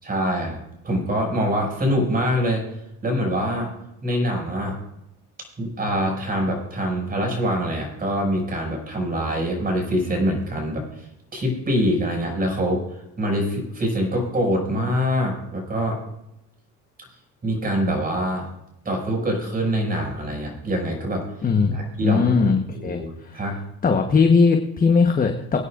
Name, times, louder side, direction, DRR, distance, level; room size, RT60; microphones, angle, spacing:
voice 1, 0.0-2.6 3.0-3.7 4.0-4.8 5.6-10.8 11.3-12.8 13.2-16.0 17.4-18.5 18.8-21.3 21.7-22.5 22.7-23.6 23.9-24.0, equal, 25° right, 1 dB, 5.9 m, -24 dB
voice 2, 21.4-21.8 22.0-23.4 23.8-25.6, left 5 dB, 25° left, 4 dB, 1.1 m, -19 dB
24.5 x 9.7 x 2.5 m, 0.86 s
supercardioid pair, 100°, 35 cm